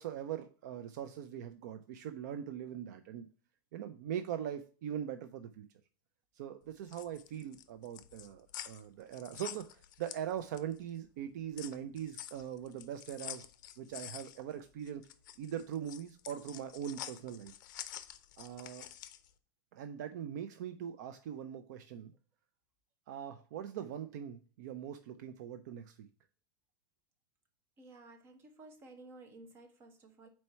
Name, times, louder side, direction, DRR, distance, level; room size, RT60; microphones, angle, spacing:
voice 1, 0.0-3.3 3.7-5.7 6.4-13.5 13.8-15.0 15.4-17.5 18.4-18.9 19.7-22.1 23.1-26.1, right 9 dB, 55° right, 9 dB, 0.5 m, -41 dB
sound 1, 6.7-10.8 11.2-19.3, left 12 dB, 60° left, 0.5 m, -48 dB
voice 2, 27.8-30.3, right 2 dB, 20° right, 5 dB, 0.9 m, -54 dB
4.4 x 4.3 x 5.5 m, 0.39 s
supercardioid pair, 170°, 11 cm